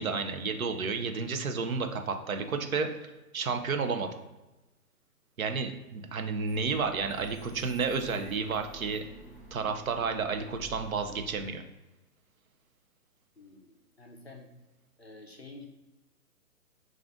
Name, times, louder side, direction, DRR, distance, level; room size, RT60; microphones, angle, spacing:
voice 1, 0.0-3.1 3.3-4.1 5.4-9.0 9.5-11.6, right 5 dB, 60° right, 6 dB, 0.6 m, -31 dB
sound 1, 6.5-11.5, equal, 30° right, 0.9 m, -49 dB
voice 2, 13.4-14.5 15.0-15.7, left 3 dB, 45° left, 1 dB, 0.4 m, -49 dB
3.7 x 2.4 x 3.5 m, 1.1 s
hypercardioid pair, 170°, 47 cm